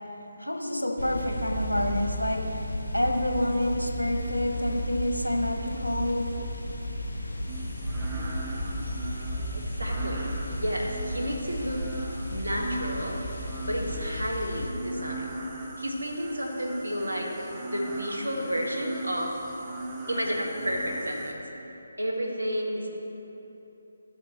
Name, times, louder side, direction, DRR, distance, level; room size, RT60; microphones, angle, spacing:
voice 1, 0.4-2.5 2.9-6.3, left 1 dB, 85° left, 1 dB, 1.3 m, -28 dB
sound 1, 1.0-14.7, equal, 60° left, 1.8 m, -34 dB
sound 2, 7.5-21.3, right 2 dB, 15° right, 0.8 m, -39 dB
voice 2, 9.5-11.9 12.3-13.2 13.6-15.4 15.8-19.4 20.1-21.4 22.0-22.9, equal, 75° right, 0 dB, 1.4 m, -31 dB
14.5 x 6.7 x 3.0 m, 3.0 s
figure-of-eight pair, 150°, 0 cm